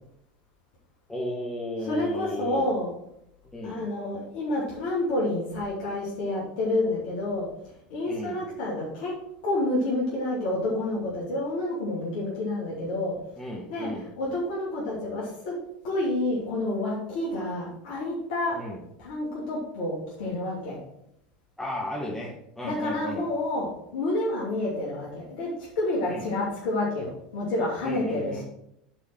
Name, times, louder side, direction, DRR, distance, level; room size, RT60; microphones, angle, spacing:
voice 1, 1.1-2.7 3.5-3.8 8.1-8.4 13.4-14.1 18.5-18.8 21.6-23.3 26.1-26.3 27.8-28.4, left 1 dB, 5° left, -5 dB, 1.9 m, -34 dB
voice 2, 1.8-2.9 3.6-7.5 7.9-9.2 9.4-13.2 13.7-13.9 14.2-15.6 15.8-18.6 19.0-20.8 22.6-28.4, left 1 dB, 70° left, -6 dB, 2.9 m, -29 dB
8.8 x 4.7 x 6.2 m, 0.77 s
hypercardioid pair, 85°, 4 cm